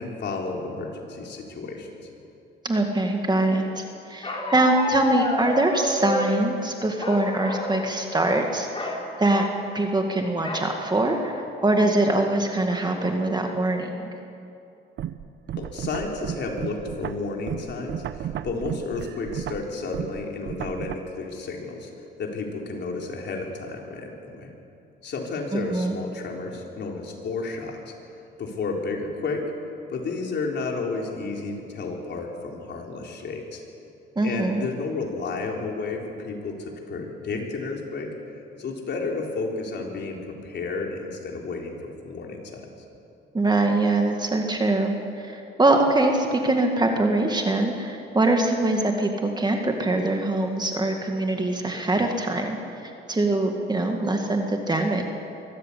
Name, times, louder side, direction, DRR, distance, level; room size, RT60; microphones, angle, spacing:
voice 1, 0.0-1.9 15.6-21.9 22.2-24.5 25.0-27.9 28.4-29.5 29.9-33.6 34.2-38.1 38.6-42.6, left 3 dB, 60° left, 0 dB, 3.9 m, -32 dB
voice 2, 2.6-8.7 9.2-9.5 9.7-14.1 25.5-26.0 34.2-34.6 43.3-55.1, right 2 dB, 20° right, 3 dB, 2.1 m, -23 dB
Bark, 4.2-6.3 7.0-7.7 8.1-8.3 8.7-9.0 10.4-10.7 11.3-11.4 11.7-12.1, left 1 dB, 25° left, 4.5 m, -29 dB
sound 1, 15.0-21.0, right 10 dB, 65° right, 0.8 m, -33 dB
23.5 x 14.0 x 8.5 m, 2.7 s
cardioid pair, 90°, 20 cm